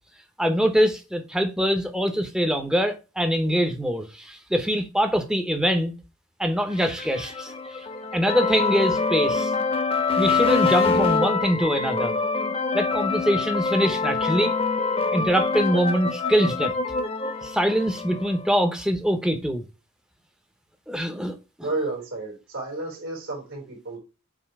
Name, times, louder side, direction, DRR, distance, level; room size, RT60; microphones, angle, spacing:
voice 1, 0.4-5.9 6.4-7.8 8.1-9.5 10.2-12.1 12.7-14.5 15.1-16.7 17.4-19.6 20.9-21.7, equal, 5° right, 0.8 m, -24 dB
sound 1, 6.7-18.5, left 4 dB, 25° left, 0.8 m, -25 dB
voice 2, 21.6-24.0, right 2 dB, 80° right, 3.8 m, -31 dB
7.3 x 2.9 x 4.6 m
head